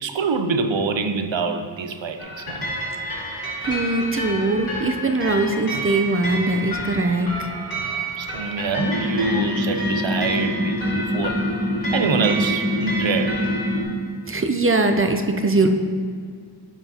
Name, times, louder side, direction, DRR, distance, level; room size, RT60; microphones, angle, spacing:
voice 1, 0.0-2.6 4.1-4.3 8.2-11.4 11.9-13.4, right 4 dB, 80° right, 7 dB, 0.6 m, -25 dB
sound 1, 2.2-13.8, right 1 dB, 50° left, 1.9 m, -30 dB
voice 2, 3.3-7.5 14.3-15.7, right 2 dB, 30° right, 6 dB, 0.5 m, -21 dB
sound 2, 8.8-13.9, equal, 30° left, 1.2 m, -25 dB
11.5 x 4.6 x 2.8 m, 2.1 s
wide cardioid pair, 45°, 45 cm